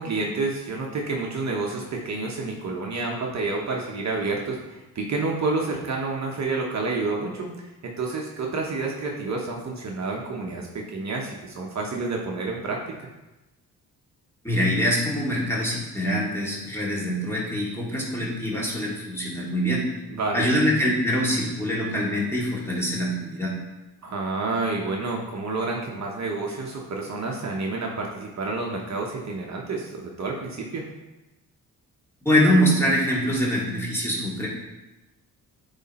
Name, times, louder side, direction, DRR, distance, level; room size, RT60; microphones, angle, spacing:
voice 1, 0.0-12.8 20.1-20.5 24.0-30.8, right 3 dB, 50° right, 0 dB, 1.0 m, -29 dB
voice 2, 14.4-19.8 20.3-23.5 32.2-34.5, equal, 5° left, -5 dB, 2.2 m, -24 dB
8.0 x 3.3 x 4.2 m, 1.0 s
cardioid pair, 85°, 36 cm